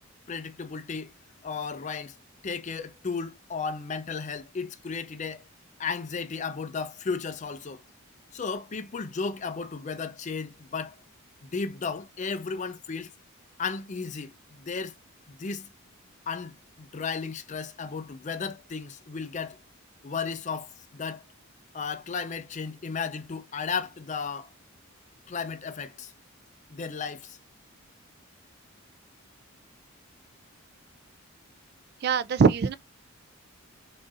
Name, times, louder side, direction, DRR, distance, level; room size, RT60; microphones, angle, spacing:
voice 1, 0.3-1.1 1.4-2.2 2.4-5.4 5.8-7.8 8.3-11.0 11.4-13.1 13.6-14.9 15.3-15.7 16.3-19.6 20.0-21.2 21.7-24.5 25.3-26.1 26.7-27.4, left 5 dB, 35° left, 0.4 m, -34 dB
voice 2, 32.0-32.7, right 5 dB, 45° right, 0.3 m, -22 dB
3.9 x 3.8 x 2.4 m
head